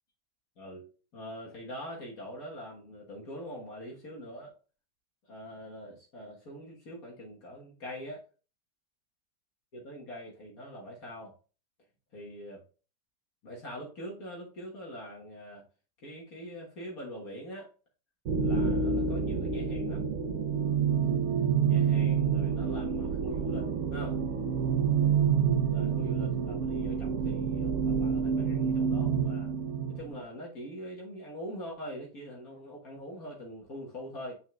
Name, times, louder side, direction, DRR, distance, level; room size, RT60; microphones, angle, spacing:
voice 1, 0.6-0.9 1.1-4.5 5.3-8.2 9.7-11.3 12.1-12.6 13.4-15.6 16.0-17.7 18.4-20.0 21.7-24.2 25.7-29.5 29.9-34.3, equal, 55° left, -3 dB, 1.8 m, -43 dB
sound 1, 18.2-30.2, right 6 dB, 55° right, 0.9 m, -28 dB
9.0 x 4.6 x 2.3 m, 0.36 s
omnidirectional pair, 1.9 m